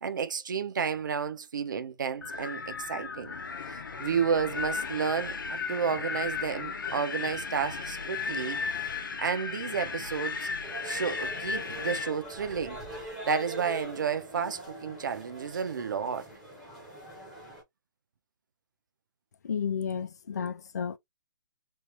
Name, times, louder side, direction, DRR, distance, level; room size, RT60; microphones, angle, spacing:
voice 1, 0.0-3.3 3.7-8.6 9.2-10.5 10.8-12.8 13.3-16.3, right 6 dB, 70° right, 0.6 m, -31 dB
Wind, 2.2-12.1, left 5 dB, 85° left, 0.8 m, -35 dB
sound 1, 10.6-17.6, right 1 dB, ahead, 0.5 m, -43 dB
voice 2, 19.4-21.0, left 7 dB, 55° left, 0.4 m, -32 dB
3.2 x 2.0 x 2.8 m
hypercardioid pair, 180°, 11 cm